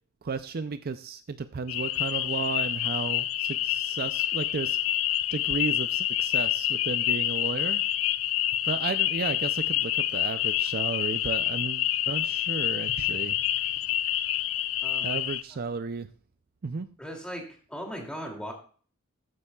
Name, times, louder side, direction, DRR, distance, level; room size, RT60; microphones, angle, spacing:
voice 1, 0.2-4.8 5.3-7.8 8.6-13.4 15.0-16.1 16.6-16.9, right 5 dB, 50° right, 11 dB, 0.5 m, -33 dB
sound 1, 1.7-15.4, left 12 dB, 75° left, 0.4 m, -27 dB
voice 2, 14.8-15.2 17.0-18.5, equal, 5° left, 1 dB, 2.6 m, -38 dB
14.0 x 9.8 x 2.3 m, 0.42 s
head